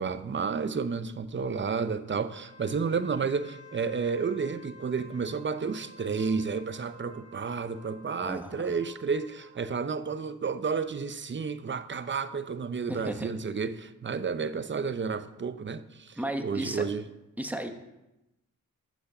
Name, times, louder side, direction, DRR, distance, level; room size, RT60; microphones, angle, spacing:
voice 1, 0.0-17.0, right 5 dB, 35° right, 0.6 m, -31 dB
Wind instrument woodwind instrument, 2.3-9.7, equal, 50° right, 1.7 m, -52 dB
voice 2, 8.2-8.7 12.9-13.3 16.2-16.9 17.4-17.7, right 1 dB, 5° right, 1.1 m, -34 dB
8.2 x 6.2 x 6.7 m
cardioid pair, 70°, 34 cm